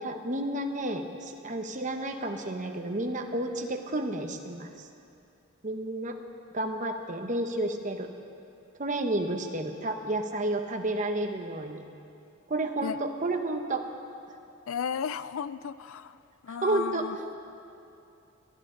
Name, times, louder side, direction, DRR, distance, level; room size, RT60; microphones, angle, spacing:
voice 1, 0.0-4.9 5.6-6.1 6.5-8.1 8.8-11.8 12.5-13.8 16.5-17.0, right 1 dB, 35° right, 5 dB, 0.9 m, -31 dB
voice 2, 14.7-16.2 16.4-17.2, left 7 dB, 65° left, 15 dB, 0.4 m, -34 dB
21.5 x 12.0 x 3.8 m, 2.7 s
head